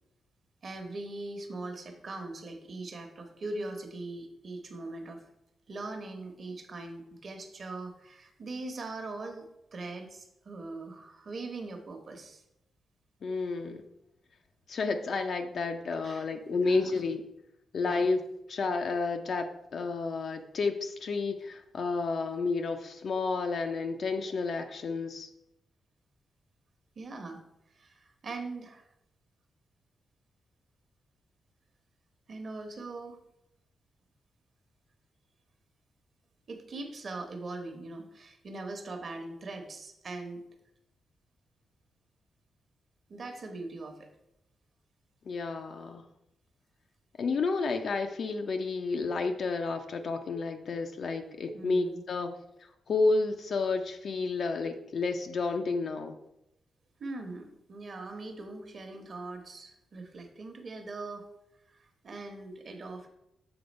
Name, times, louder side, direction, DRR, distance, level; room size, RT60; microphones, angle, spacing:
voice 1, 0.6-5.2 5.7-9.4 9.7-12.4 16.0-16.2 16.5-16.9 17.8-18.1 27.0-27.4 27.7-28.9 32.3-33.2 36.5-40.4 43.1-44.1 51.5-52.0 57.0-61.2 61.7-61.8 62.0-63.1, right 2 dB, 40° right, 5 dB, 1.0 m, -41 dB
voice 2, 13.2-13.8 14.7-17.2 17.7-18.2 18.5-25.3 45.3-46.0 47.2-52.4 52.9-56.2, left 3 dB, 50° left, 6 dB, 0.5 m, -31 dB
7.0 x 3.9 x 5.2 m, 0.84 s
wide cardioid pair, 155°, 0 cm